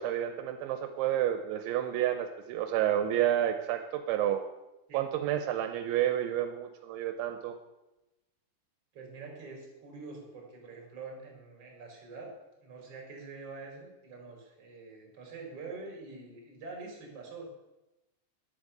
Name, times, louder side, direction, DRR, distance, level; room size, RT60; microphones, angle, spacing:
voice 1, 0.0-4.4 4.9-7.6, right 11 dB, 85° right, 7 dB, 3.0 m, -30 dB
voice 2, 8.9-12.3 12.6-17.4, right 4 dB, 35° right, 0 dB, 3.9 m, -45 dB
10.5 x 8.6 x 7.9 m, 0.98 s
omnidirectional pair, 5.5 m